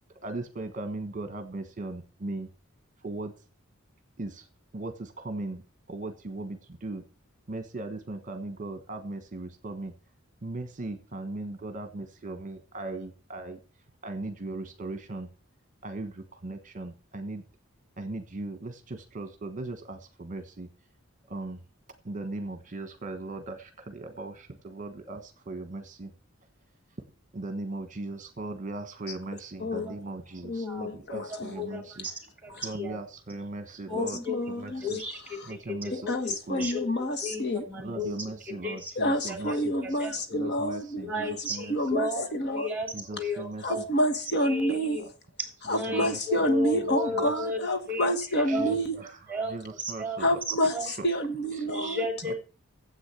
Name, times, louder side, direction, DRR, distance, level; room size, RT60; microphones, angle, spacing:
voice 1, 0.2-2.5 3.0-3.3 4.2-4.5 4.7-5.6 5.9-7.0 7.5-9.9 10.4-13.6 14.0-15.3 15.8-17.4 18.0-20.7 21.3-21.6 22.0-26.1 27.3-32.1 32.6-34.2 34.5-35.0 35.5-35.9 36.5-36.7 37.0-37.1 37.8-39.9 40.3-41.7 42.9-43.8 45.7-47.5 48.5-49.2 49.5-50.4 50.9-51.0 51.5-52.0 52.2-52.3, right 2 dB, 40° right, 1.3 m, -38 dB
voice 2, 29.6-29.9 30.4-31.5 33.9-34.8 35.9-37.6 39.0-42.7 43.6-45.0 45.7-49.0 50.2-52.0, equal, 55° left, 1.3 m, -28 dB
voice 3, 31.3-32.1 32.4-33.0 33.9-34.4 34.8-38.1 38.5-38.9 39.3-40.1 41.0-43.9 44.4-45.0 45.4-47.6 47.9-48.1 48.4-50.2 50.7-50.9 51.7-52.4, left 1 dB, 10° right, 3.4 m, -34 dB
9.8 x 8.0 x 7.0 m
head